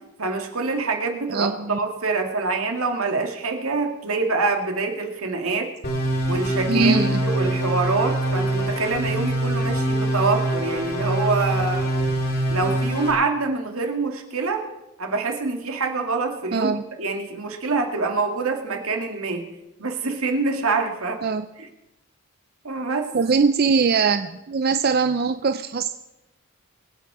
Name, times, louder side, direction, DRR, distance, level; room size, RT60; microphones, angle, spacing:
voice 1, 0.2-5.7 6.3-11.9 12.5-14.6 15.0-19.5 19.8-21.2 22.6-23.1, right 3 dB, 75° right, 4 dB, 2.2 m, -25 dB
voice 2, 1.3-1.8 6.7-7.2 16.5-16.8 21.2-21.5 23.1-25.9, right 5 dB, 45° right, 10 dB, 0.4 m, -21 dB
sound 1, 5.8-13.1, right 1 dB, 45° left, 2.4 m, -24 dB
24.5 x 8.5 x 4.8 m, 0.98 s
head